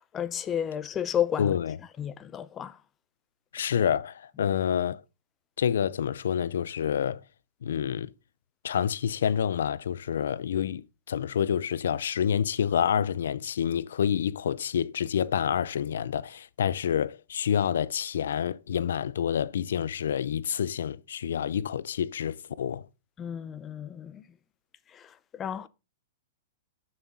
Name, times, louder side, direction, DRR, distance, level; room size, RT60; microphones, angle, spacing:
voice 1, 0.0-1.6 2.0-2.8 23.2-24.2 24.9-25.7, left 9 dB, 20° left, 0.6 m, -32 dB
voice 2, 1.4-1.8 3.5-5.0 5.6-7.2 7.6-8.1 8.6-22.9, left 8 dB, 80° left, 0.6 m, -28 dB
11.0 x 6.4 x 3.9 m
hypercardioid pair, 140°, 0 cm